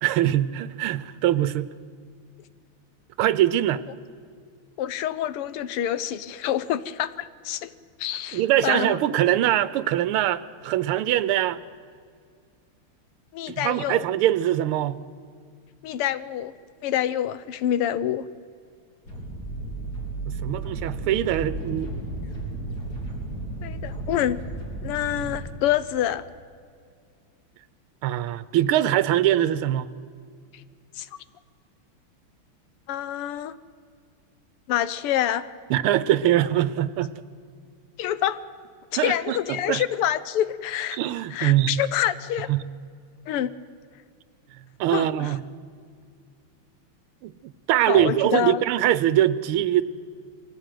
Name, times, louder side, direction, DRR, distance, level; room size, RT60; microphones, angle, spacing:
voice 1, 0.0-1.7 3.2-3.8 8.3-11.6 13.5-15.0 20.3-21.9 28.0-29.9 35.7-37.1 39.0-39.8 40.9-41.8 42.5-42.6 44.8-45.4 47.2-47.3 47.7-49.8, right 12 dB, 80° right, 16 dB, 1.6 m, -22 dB
voice 2, 4.8-7.7 8.0-9.0 13.3-14.0 15.8-16.5 16.8-18.3 23.6-24.4 24.8-26.3 31.0-31.1 32.9-33.6 34.7-35.5 38.0-38.4 38.9-41.0 41.3-42.5 43.3-43.5 44.9-45.3 47.9-48.6, left 11 dB, 90° left, 15 dB, 1.8 m, -27 dB
sound 1, 19.0-25.4, right 2 dB, 45° left, 3.8 m, -33 dB
22.5 x 16.0 x 9.2 m, 2.1 s
omnidirectional pair, 2.4 m